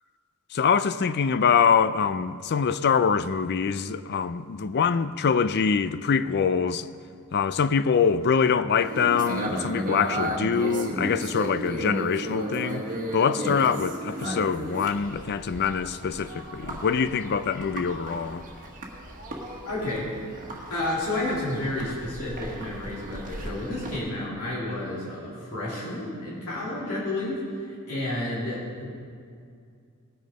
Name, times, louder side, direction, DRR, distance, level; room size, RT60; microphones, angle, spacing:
voice 1, 0.5-6.9 7.3-12.9 13.1-18.4, left 6 dB, 50° left, 0.4 m, -24 dB
sound 1, 8.8-24.0, right 1 dB, 40° right, 1.5 m, -34 dB
voice 2, 19.6-20.1 20.7-28.9, left 1 dB, 75° left, 3.2 m, -31 dB
19.0 x 6.5 x 5.3 m
head